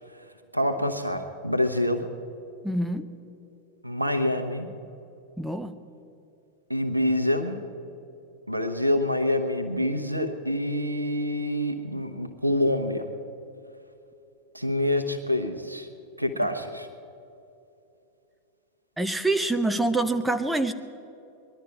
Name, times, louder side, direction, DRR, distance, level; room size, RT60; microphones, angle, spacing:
voice 1, 0.1-2.0 3.8-4.7 6.7-7.6 8.5-13.1 14.5-15.9 16.2-16.9, left 1 dB, 85° right, 7 dB, 1.0 m, -26 dB
voice 2, 2.6-3.1 5.4-5.7 19.0-20.7, right 2 dB, 5° right, 8 dB, 0.6 m, -25 dB
20.0 x 11.5 x 4.8 m, 2.7 s
figure-of-eight pair, 90°, 0 cm